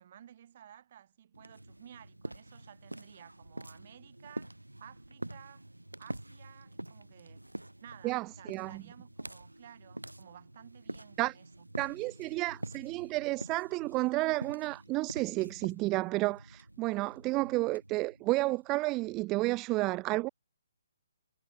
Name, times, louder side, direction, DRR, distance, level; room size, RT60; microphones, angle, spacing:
voice 1, 0.0-4.5 4.8-5.6 6.0-7.4 7.8-11.7, right 10 dB, 45° right, 5.1 m, -55 dB
sound 1, 1.3-18.9, right 1 dB, 90° right, 2.8 m, -46 dB
voice 2, 8.0-8.8 11.2-11.3 11.8-20.3, right 21 dB, 20° right, 0.6 m, -31 dB
figure-of-eight pair, 135°, 0 cm